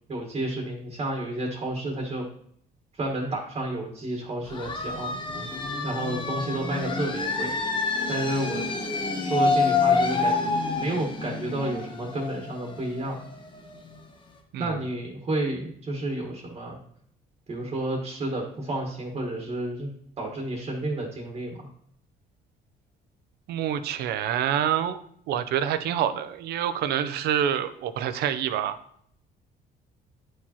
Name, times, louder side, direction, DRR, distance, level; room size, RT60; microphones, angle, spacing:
voice 1, 0.1-2.2 2.9-5.1 5.8-7.5 8.1-8.6 9.2-10.4 10.7-13.2 14.6-16.8 17.5-19.9 20.2-21.7, right 1 dB, 35° right, 1 dB, 1.4 m, -31 dB
sound 1, 4.5-13.9, left 3 dB, 30° left, 1.1 m, -28 dB
voice 2, 23.5-25.0 25.3-28.8, right 10 dB, 75° right, 11 dB, 0.6 m, -27 dB
10.0 x 4.7 x 2.9 m, 0.66 s
cardioid pair, 110°, 17 cm